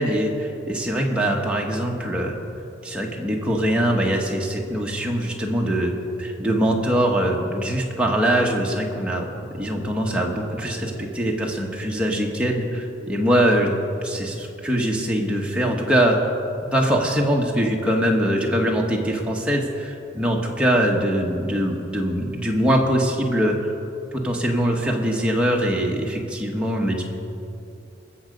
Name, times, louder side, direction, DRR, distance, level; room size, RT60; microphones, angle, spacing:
voice 1, 0.0-2.4 2.8-5.9 6.2-9.3 9.6-13.7 14.0-16.3 16.7-23.7 24.1-27.0, equal, 5° right, -1 dB, 1.2 m, -22 dB
20.5 x 7.3 x 5.3 m, 2.7 s
head